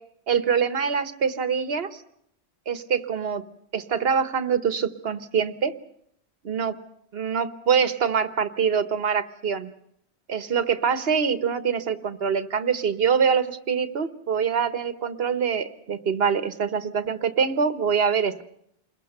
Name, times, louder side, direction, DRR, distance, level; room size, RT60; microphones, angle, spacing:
voice 1, 0.3-2.0 2.7-3.4 3.7-5.7 6.5-6.7 7.1-9.7 10.3-18.4, right 6 dB, 65° right, 12 dB, 1.4 m, -24 dB
28.5 x 21.5 x 6.7 m, 0.71 s
omnidirectional pair, 1.1 m